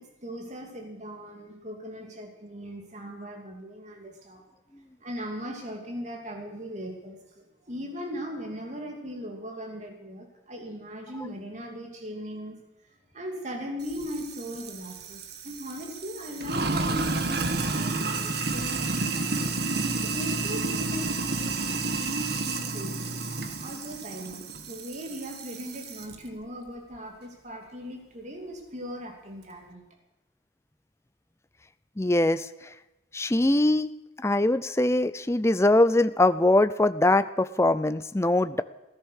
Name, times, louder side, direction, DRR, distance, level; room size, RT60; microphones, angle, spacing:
voice 1, 0.0-4.4 5.0-12.6 13.1-19.4 20.0-23.1 23.6-29.9, equal, 35° right, 1 dB, 2.8 m, -39 dB
Sink (filling or washing), 13.8-26.2, right 3 dB, 55° right, 1.5 m, -31 dB
voice 2, 32.0-32.7 33.1-38.6, left 2 dB, 15° left, 12 dB, 0.5 m, -22 dB
16.0 x 13.5 x 6.5 m, 0.97 s
head